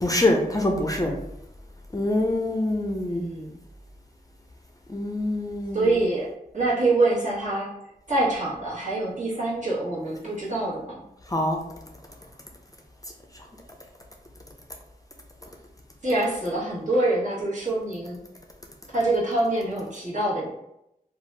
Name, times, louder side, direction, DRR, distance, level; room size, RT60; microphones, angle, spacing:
voice 1, 0.0-1.1 1.9-3.3 4.9-6.0 11.3-11.6, left 1 dB, 25° left, 2 dB, 0.5 m, -25 dB
voice 2, 3.1-3.6 5.7-7.7 8.1-11.0 16.0-18.2 18.9-20.5, right 2 dB, 55° right, -7 dB, 1.3 m, -25 dB
2.7 x 2.3 x 3.2 m, 0.82 s
wide cardioid pair, 60°, 16 cm